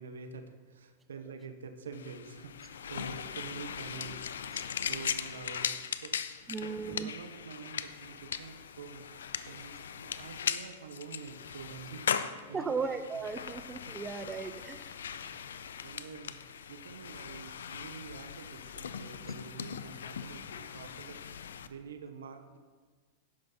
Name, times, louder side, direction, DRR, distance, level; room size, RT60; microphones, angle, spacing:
voice 1, 0.0-6.1 6.5-12.8 13.8-13.9 15.1-15.2 15.6-22.6, right 5 dB, 90° right, 7 dB, 1.2 m, -47 dB
sound 1, 1.9-21.7, left 8 dB, 85° left, 0.6 m, -39 dB
voice 2, 6.5-7.1 12.5-14.9, right 5 dB, 20° right, 9 dB, 0.7 m, -36 dB
11.5 x 10.0 x 4.0 m, 1.4 s
hypercardioid pair, 115°, 0 cm